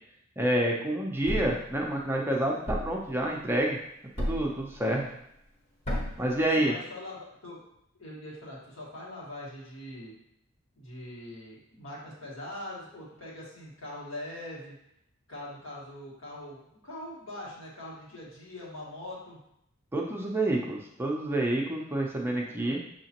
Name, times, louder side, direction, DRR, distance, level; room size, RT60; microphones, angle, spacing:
voice 1, 0.4-3.8 4.2-5.0 6.2-6.7 19.9-22.8, right 1 dB, 10° right, -1 dB, 0.5 m, -28 dB
Thump thud, 1.3-1.6 2.7-3.0 4.2-4.6 5.8-6.3, equal, 30° left, 0.9 m, -31 dB
voice 2, 4.8-5.2 6.4-7.2 7.4-7.6 8.0-10.1 10.7-14.7 15.3-19.4, left 1 dB, 75° left, -5 dB, 1.6 m, -42 dB
6.0 x 2.9 x 2.9 m, 0.76 s
head